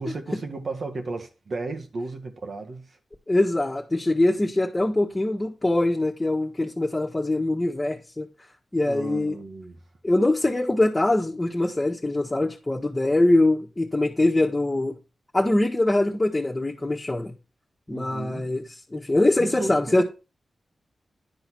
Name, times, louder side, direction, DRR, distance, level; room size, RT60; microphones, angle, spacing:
voice 1, 0.0-3.0 8.9-9.8 17.9-18.5 19.4-20.0, right 3 dB, 65° right, 1.6 m, -34 dB
voice 2, 3.3-8.3 8.7-9.4 10.0-14.9 15.3-17.3 17.9-20.0, left 2 dB, 20° left, 1.5 m, -23 dB
10.5 x 4.0 x 6.1 m
cardioid pair, 65°, 0 cm